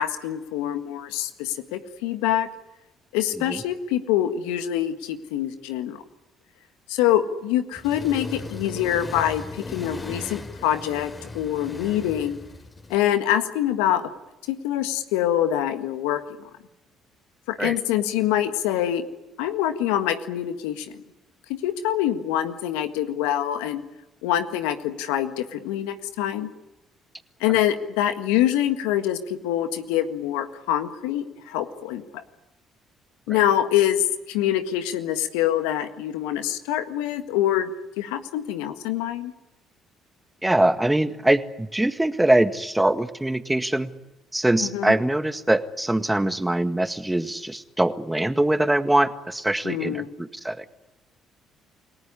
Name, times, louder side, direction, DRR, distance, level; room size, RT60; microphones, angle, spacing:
voice 1, 0.0-2.5 3.1-6.0 6.9-12.4 12.9-14.1 14.5-16.2 17.5-19.0 19.4-20.9 21.5-23.8 24.2-26.5 27.4-32.2 33.3-37.7 38.0-39.3 44.6-44.9 49.6-50.1, left 11 dB, 80° left, 10 dB, 1.7 m, -25 dB
Accelerating revving vroom, 7.7-12.9, left 2 dB, 30° left, 4.1 m, -37 dB
voice 2, 40.4-43.9 44.3-50.6, right 1 dB, 10° right, 11 dB, 1.8 m, -23 dB
29.0 x 18.5 x 9.8 m, 0.98 s
hypercardioid pair, 55°, 0 cm